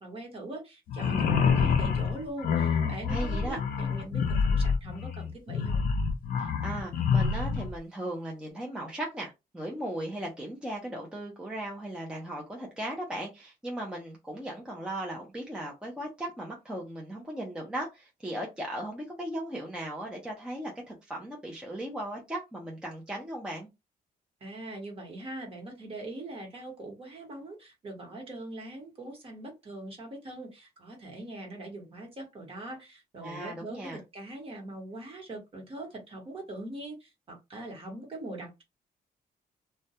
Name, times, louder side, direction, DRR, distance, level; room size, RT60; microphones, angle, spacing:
voice 1, 0.0-5.8 24.4-38.6, right 1 dB, 35° right, 1.0 m, -42 dB
sound 1, 0.9-7.7, left 6 dB, 60° left, 0.5 m, -27 dB
voice 2, 3.1-3.6 6.4-23.7 33.2-34.0, right 1 dB, 5° right, 0.5 m, -37 dB
2.2 x 2.2 x 2.7 m
cardioid pair, 145°, 16 cm